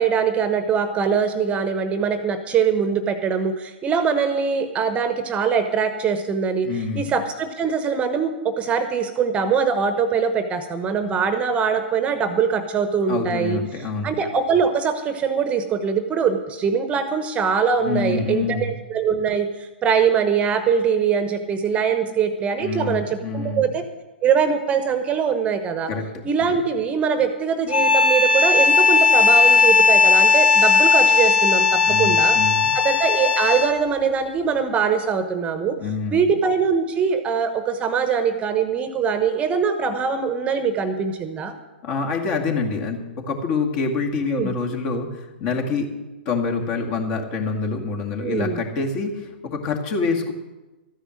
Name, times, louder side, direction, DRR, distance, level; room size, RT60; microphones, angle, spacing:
voice 1, 0.0-6.7 6.9-13.6 14.0-23.8 24.2-25.9 26.2-32.4 32.7-35.8 36.1-41.5 44.3-44.5 48.2-48.6, right 6 dB, 20° right, 9 dB, 1.0 m, -22 dB
voice 2, 6.6-7.1 13.1-14.2 17.8-18.7 22.6-23.7 25.9-26.0 26.4-26.5 31.8-32.7 35.8-36.3 41.8-45.9 46.3-50.3, left 4 dB, 40° left, 2 dB, 2.2 m, -26 dB
sound 1, 27.7-33.9, left 4 dB, 65° left, 4.5 m, -16 dB
13.5 x 10.0 x 6.4 m, 1.1 s
figure-of-eight pair, 115°, 6 cm